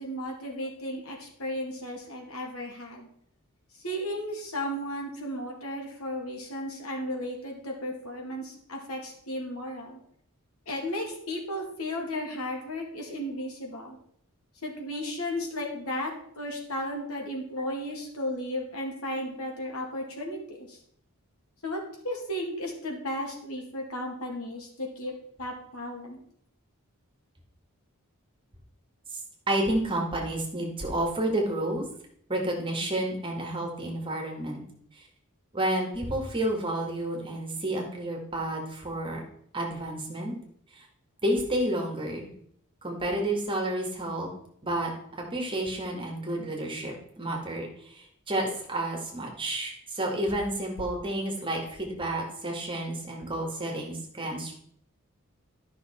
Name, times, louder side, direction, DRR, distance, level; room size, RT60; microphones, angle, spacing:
voice 1, 0.0-3.1 3.7-10.0 10.7-14.0 14.6-20.8 21.6-26.2, left 1 dB, 75° left, 0 dB, 2.3 m, -34 dB
voice 2, 29.5-31.8 32.3-34.6 35.5-39.2 39.5-40.4 40.8-40.9 41.2-42.3 42.8-44.3 44.6-44.9 45.3-54.5, right 1 dB, 25° right, 1 dB, 2.0 m, -30 dB
11.5 x 5.9 x 4.4 m, 0.67 s
head